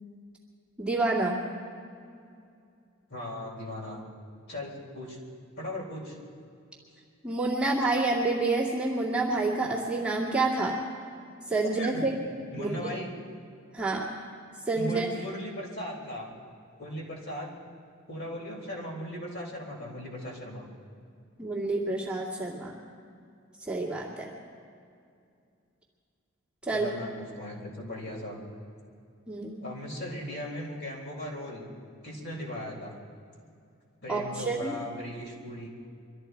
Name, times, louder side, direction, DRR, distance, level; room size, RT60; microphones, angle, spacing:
voice 1, 0.8-1.4 7.2-10.8 11.5-12.1 12.6-12.9 13.7-14.1 14.7-15.1 21.4-22.8 23.6-24.3 26.6-26.9 29.3-29.6 34.1-34.8, right 3 dB, 5° right, -6 dB, 2.2 m, -28 dB
voice 2, 3.1-4.0 4.5-5.2 5.6-6.2 11.8-12.0 12.5-13.1 14.7-16.3 16.8-17.5 18.1-20.7 26.7-28.4 29.6-31.7 32.0-32.9 34.0-35.7, left 1 dB, 55° left, -3 dB, 3.9 m, -38 dB
23.5 x 13.0 x 4.6 m, 2.4 s
head